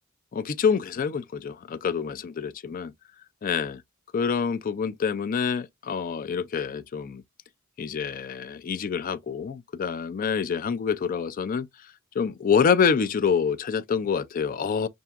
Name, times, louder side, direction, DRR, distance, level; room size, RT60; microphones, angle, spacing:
voice 1, 0.3-2.9 3.4-3.8 4.1-7.2 7.8-11.7 12.1-14.9, left 6 dB, 40° left, 0.4 m, -26 dB
5.6 x 2.6 x 2.4 m
head